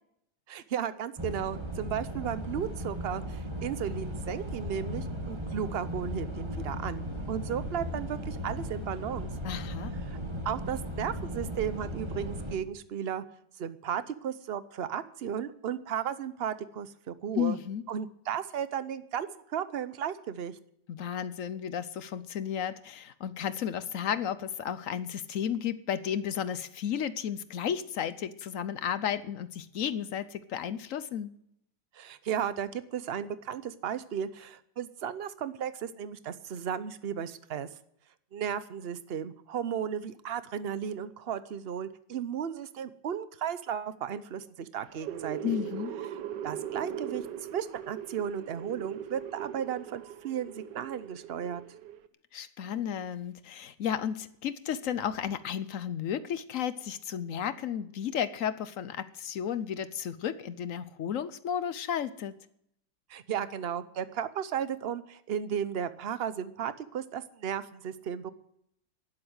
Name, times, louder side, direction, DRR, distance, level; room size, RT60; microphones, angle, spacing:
voice 1, 0.5-9.3 10.1-10.2 10.4-13.2 13.6-17.6 17.9-20.6 31.9-37.7 38.3-45.6 46.4-47.2 47.5-51.6 63.1-68.3, right 8 dB, 55° right, 13 dB, 0.6 m, -35 dB
sound 1, 1.2-12.6, equal, 15° right, 1.4 m, -37 dB
voice 2, 9.4-10.0 17.3-17.8 20.9-31.3 45.4-46.0 52.3-62.4, left 9 dB, 65° left, 14 dB, 0.8 m, -33 dB
sound 2, 44.8-52.1, right 10 dB, 75° right, 1.4 m, -40 dB
12.0 x 11.0 x 8.0 m, 0.74 s
omnidirectional pair, 2.0 m